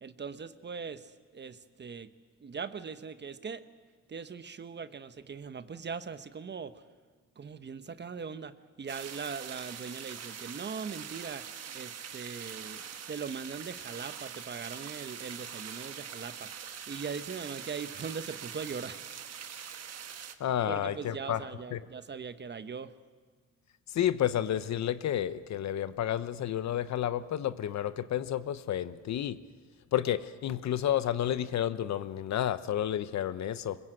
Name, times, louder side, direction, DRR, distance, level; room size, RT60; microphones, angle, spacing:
voice 1, 0.0-2.1 2.4-3.6 4.1-6.8 7.4-16.5 16.9-19.1 20.7-22.9, right 5 dB, 35° right, 11 dB, 1.1 m, -40 dB
sound 1, 8.9-20.3, right 8 dB, 55° right, 1.5 m, -43 dB
voice 2, 20.4-21.4 21.7-21.8 23.9-29.4 29.9-33.8, left 11 dB, 65° left, 14 dB, 0.9 m, -31 dB
22.5 x 21.5 x 7.9 m, 1.5 s
cardioid pair, 90°, 30 cm